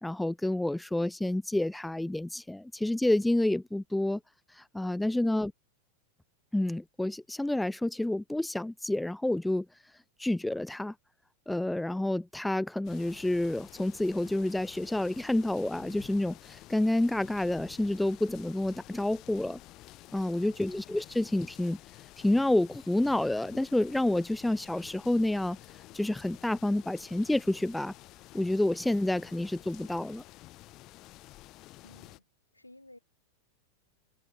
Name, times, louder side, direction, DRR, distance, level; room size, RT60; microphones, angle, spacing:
voice 1, 0.0-4.2 4.7-5.5 6.5-9.7 10.2-10.9 11.5-19.6 20.1-21.8 22.2-25.6 25.9-27.9 28.3-30.2, left 1 dB, 5° left, 0.3 m, -29 dB
sound 1, 12.8-32.2, left 18 dB, 40° left, 2.7 m, -51 dB
voice 2, 20.4-20.8 31.8-32.3 32.5-33.0, left 1 dB, 85° left, 2.2 m, -55 dB
figure-of-eight pair, 90°, 0 cm